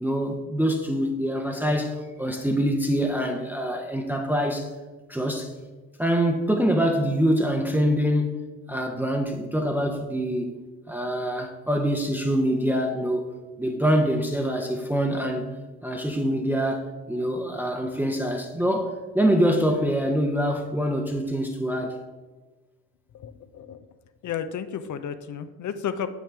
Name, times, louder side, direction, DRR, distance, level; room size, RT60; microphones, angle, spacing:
voice 1, 0.0-4.7 5.1-5.5 6.0-8.4 8.7-10.5 10.9-13.3 13.6-15.4 15.8-18.9 19.1-22.0, equal, 5° right, 2 dB, 0.8 m, -25 dB
voice 2, 23.1-23.8 24.2-26.1, left 8 dB, 50° left, 11 dB, 0.6 m, -32 dB
6.9 x 6.2 x 3.4 m, 1.2 s
hypercardioid pair, 55°, 39 cm